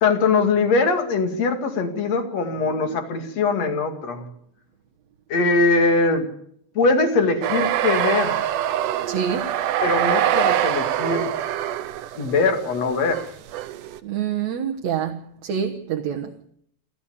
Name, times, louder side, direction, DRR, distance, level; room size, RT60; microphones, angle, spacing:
voice 1, 0.0-4.3 5.3-6.3 6.8-8.5 9.8-11.3 12.2-13.2, left 3 dB, 55° left, 3.5 m, -21 dB
sound 1, 7.4-14.0, right 12 dB, 85° right, 2.6 m, -24 dB
voice 2, 9.1-9.6 14.0-16.3, right 8 dB, 65° right, 2.4 m, -26 dB
29.0 x 12.5 x 7.1 m
omnidirectional pair, 3.6 m